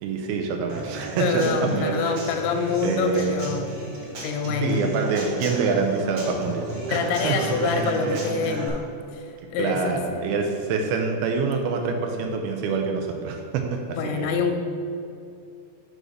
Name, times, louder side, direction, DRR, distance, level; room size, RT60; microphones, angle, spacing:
voice 1, 0.0-2.2 2.8-3.5 4.6-8.2 9.6-14.3, right 5 dB, 80° right, 3 dB, 2.4 m, -26 dB
Human voice / Acoustic guitar / Drum, 0.7-8.7, right 2 dB, 60° right, 1.8 m, -34 dB
voice 2, 1.2-3.7 4.0-4.8 6.9-8.9 9.1-10.2 13.9-14.6, left 5 dB, 85° left, 4 dB, 2.6 m, -26 dB
6.3 x 5.0 x 6.4 m, 2.7 s
omnidirectional pair, 4.6 m